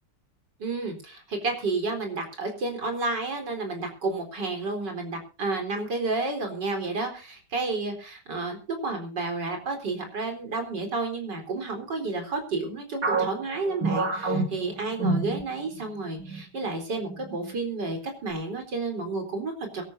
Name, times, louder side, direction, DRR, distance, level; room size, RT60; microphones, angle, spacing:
voice 1, 0.6-19.9, right 3 dB, 65° right, 4 dB, 4.7 m, -31 dB
sound 1, 13.0-15.9 16.2-16.4 17.0-17.5, right 3 dB, 45° right, 3.5 m, -28 dB
24.5 x 13.0 x 2.8 m, 0.35 s
omnidirectional pair, 2.0 m